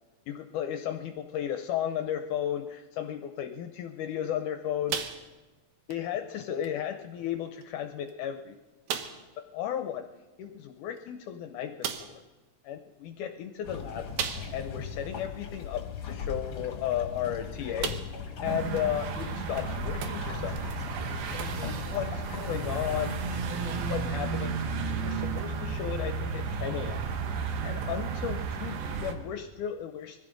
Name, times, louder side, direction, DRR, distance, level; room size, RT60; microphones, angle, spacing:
voice 1, 0.3-5.0 5.9-8.6 9.5-10.1 10.4-11.9 12.6-14.1 14.5-18.0 18.4-24.7 24.9-27.0 27.6-30.2, left 10 dB, 75° left, 6 dB, 1.9 m, -34 dB
sound 1, 4.9-5.6 5.9-6.1 6.6-6.7 7.6-7.7 8.1-8.2 8.9-9.3 11.0-11.1 11.8-12.2 14.2-14.8 15.3-15.4 17.2-17.4 17.8-18.3 18.8-18.9 20.5-20.6, right 8 dB, 70° right, 2.0 m, -35 dB
sound 2, 13.6-23.1, left 6 dB, 50° left, 1.6 m, -39 dB
sound 3, 18.4-29.1, right 5 dB, 85° right, 3.0 m, -33 dB
23.0 x 15.0 x 3.8 m, 1.2 s
omnidirectional pair, 4.1 m